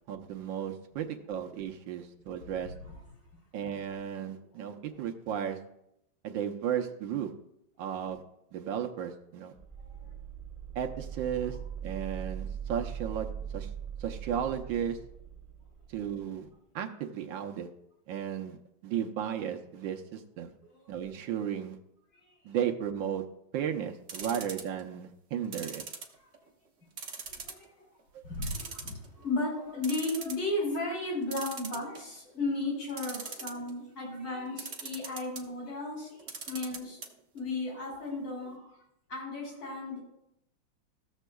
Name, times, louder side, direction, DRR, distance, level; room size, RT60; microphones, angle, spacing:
voice 1, 0.1-2.7 3.5-5.6 6.2-7.3 7.8-8.2 8.5-9.5 10.7-11.6 11.8-13.7 14.0-15.0 15.9-16.5 16.7-17.7 18.1-18.6 18.8-20.5 20.9-21.8 22.4-23.2 23.5-25.8, right 9 dB, 80° right, 3 dB, 1.5 m, -34 dB
voice 2, 2.6-3.0 9.8-10.1 20.7-21.1 24.2-24.4 27.2-27.9 28.2-37.0 37.3-38.7 39.1-40.0, left 2 dB, 70° left, -4 dB, 4.6 m, -35 dB
sound 1, 9.6-16.2, right 8 dB, 20° right, 1.0 m, -41 dB
sound 2, 24.1-24.8 25.5-26.5 27.0-27.6 28.0-28.1 28.4-29.2 29.6-29.7 29.8-30.5 31.3-32.2 32.9-33.7 34.6-35.4 36.2-37.1 37.4-37.5 37.7-37.8, right 5 dB, 50° right, 0.9 m, -40 dB
15.0 x 7.2 x 2.3 m, 0.79 s
omnidirectional pair, 2.1 m